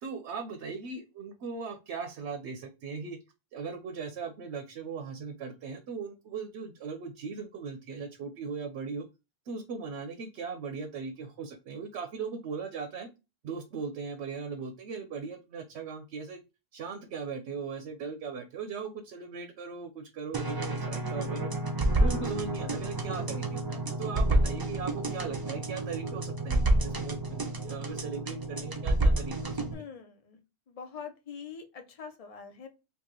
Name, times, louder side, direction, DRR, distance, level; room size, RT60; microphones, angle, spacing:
voice 1, 0.0-3.2 3.5-9.0 9.5-13.1 13.4-16.4 16.7-21.5 22.0-29.6, right 5 dB, 85° right, 6 dB, 0.9 m, -38 dB
sound 1, 20.3-29.7, right 1 dB, 30° right, 0.4 m, -29 dB
voice 2, 22.0-22.4 29.7-30.4 30.7-32.7, left 6 dB, 40° left, 6 dB, 0.7 m, -44 dB
3.0 x 2.8 x 3.6 m, 0.27 s
omnidirectional pair, 1.1 m